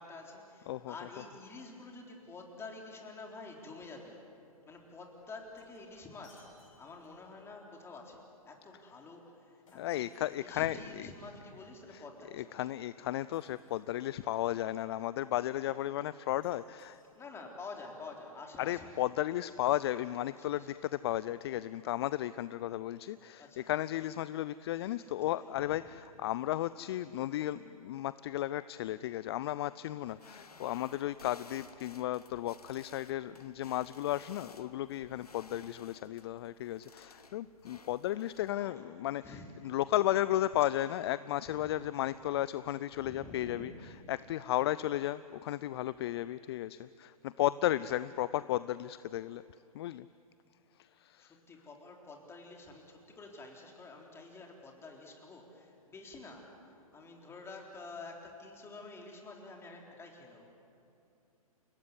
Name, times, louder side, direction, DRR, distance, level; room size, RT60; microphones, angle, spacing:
voice 1, 0.0-4.2 4.7-12.7 17.2-18.9 20.3-20.7 23.4-23.7 24.8-25.5 38.6-38.9 39.2-39.8 40.6-40.7 41.5-41.7 42.9-43.7 51.2-60.5, left 3 dB, 15° left, 1 dB, 3.8 m, -49 dB
Shatter, 5.2-7.4 9.7-10.9 13.3-14.1 16.4-17.5, left 3 dB, 60° left, 6.2 m, -66 dB
voice 2, 9.7-11.1 11.9-12.0 12.3-17.0 18.6-39.2 39.6-43.7 44.1-49.4 49.7-50.1 51.0-51.3, left 14 dB, 45° left, 16 dB, 0.5 m, -34 dB
sound 1, 30.0-38.5, left 4 dB, 90° left, 1.2 m, -56 dB
29.5 x 17.5 x 9.7 m, 2.6 s
figure-of-eight pair, 120°, 19 cm